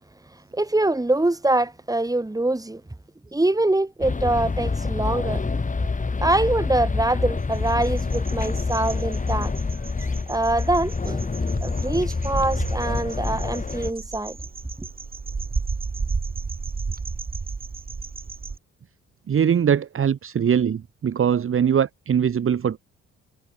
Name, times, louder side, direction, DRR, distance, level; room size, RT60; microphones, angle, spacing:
voice 1, 0.5-2.8 3.3-5.4 6.2-9.5 10.3-11.3 11.6-14.4, right 2 dB, 10° right, 5.3 m, -24 dB
sound 1, 4.0-13.9, left 4 dB, 25° left, 4.2 m, -27 dB
sound 2, 7.5-18.6, right 4 dB, 30° right, 4.9 m, -33 dB
voice 2, 19.3-22.8, right 8 dB, 45° right, 1.4 m, -21 dB
cardioid pair, 90°, 30 cm